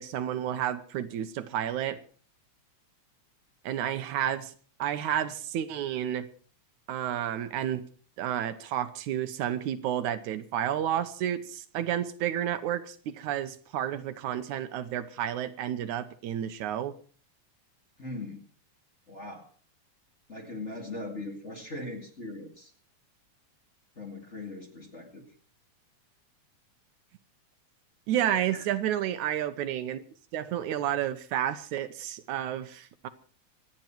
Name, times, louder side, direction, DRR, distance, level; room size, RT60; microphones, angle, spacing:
voice 1, 0.0-2.0 3.6-4.5 4.8-6.3 6.9-7.9 8.2-16.9 28.1-30.0 30.3-33.1, right 11 dB, 80° right, 10 dB, 2.3 m, -31 dB
voice 2, 18.0-18.5 19.1-19.5 20.3-22.7 24.0-25.3 28.5-28.6, left 2 dB, 25° left, 2 dB, 2.1 m, -40 dB
25.5 x 9.4 x 4.5 m, 0.43 s
omnidirectional pair, 3.4 m